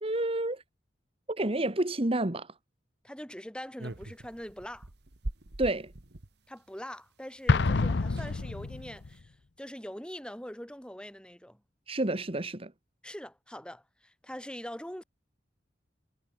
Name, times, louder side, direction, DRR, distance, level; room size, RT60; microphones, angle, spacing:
voice 1, 0.0-0.6 1.3-2.5 5.6-5.9 11.9-12.7, right 1 dB, 35° right, 1.6 m, -29 dB
voice 2, 3.0-4.9 6.5-9.3 9.6-11.6 13.0-15.0, equal, 5° left, 7.6 m, -43 dB
sound 1, 3.8-6.3 7.5-7.6 7.8-7.9 8.1-8.4 8.9-9.2, right 1 dB, 65° right, 1.6 m, -42 dB
Explosion, 7.5-9.1, left 3 dB, 70° left, 0.7 m, -27 dB
head